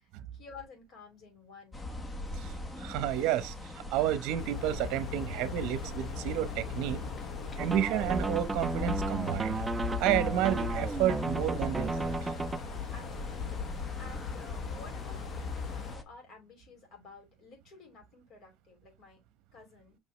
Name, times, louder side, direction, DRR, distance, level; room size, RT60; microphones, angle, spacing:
voice 1, 0.0-1.8 12.7-19.2 19.5-20.0, left 5 dB, 45° left, 4.6 m, -52 dB
sound 1, 1.7-16.0, left 1 dB, 10° left, 1.0 m, -42 dB
voice 2, 2.3-7.0 7.6-9.6 10.0-12.3, right 12 dB, 65° right, 0.9 m, -31 dB
sound 2, 4.4-16.0, left 7 dB, 60° left, 1.1 m, -39 dB
sound 3, 7.6-12.6, right 3 dB, 15° right, 0.3 m, -34 dB
5.7 x 5.5 x 3.0 m
cardioid pair, 165°, 0 cm